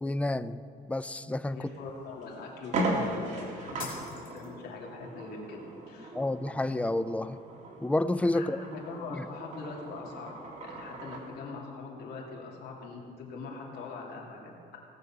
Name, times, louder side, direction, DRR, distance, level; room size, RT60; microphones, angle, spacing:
voice 1, 0.0-1.7 6.1-7.4 7.8-8.6 9.1-9.3, left 2 dB, 10° left, 14 dB, 0.4 m, -30 dB
voice 2, 1.5-6.2 8.3-10.3 10.6-14.8, left 3 dB, 70° left, -1 dB, 2.7 m, -42 dB
sound 1, 1.7-1.8 2.2-2.3 2.6-11.3, right 2 dB, 45° right, 2.4 m, -37 dB
sound 2, 3.8-4.8, left 5 dB, 55° left, 2.8 m, -45 dB
18.0 x 6.8 x 6.0 m, 2.6 s
cardioid pair, 110°, 17 cm